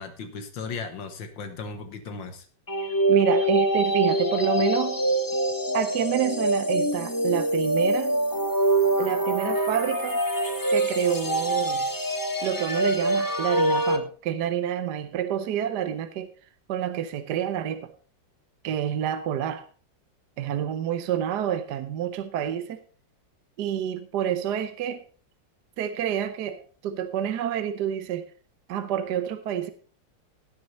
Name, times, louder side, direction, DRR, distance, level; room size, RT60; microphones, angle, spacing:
voice 1, 0.0-2.5, left 4 dB, 80° left, 1.9 m, -36 dB
sound 1, 2.7-14.0, right 1 dB, 30° left, 0.3 m, -24 dB
voice 2, 3.1-5.0 5.7-8.2 9.0-10.2 10.7-11.9 12.4-16.3 16.7-17.9 18.6-19.7 20.4-22.8 23.6-25.0 25.8-28.3 28.7-29.7, right 10 dB, 70° right, 1.3 m, -28 dB
17.0 x 6.4 x 4.1 m
omnidirectional pair, 2.0 m